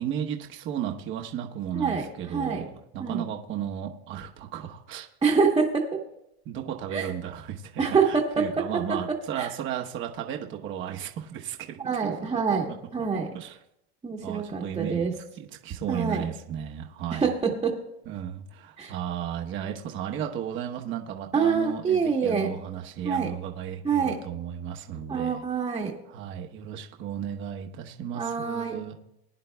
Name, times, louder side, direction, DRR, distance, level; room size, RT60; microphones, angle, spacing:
voice 1, 0.0-5.1 6.4-12.1 12.5-13.6 14.2-15.1 15.4-17.3 18.1-25.4 26.1-28.9, right 9 dB, 35° right, 3 dB, 1.0 m, -34 dB
voice 2, 1.7-2.6 3.0-3.2 5.2-6.0 6.9-7.1 7.8-9.5 11.8-12.7 12.9-13.3 14.0-15.1 15.9-16.2 17.1-17.8 18.8-18.9 21.3-22.5 23.0-23.3 23.8-24.2 25.1-26.0 28.1-28.8, right 5 dB, 15° right, -4 dB, 1.2 m, -26 dB
21.0 x 10.5 x 2.3 m, 0.81 s
supercardioid pair, 145°, 33 cm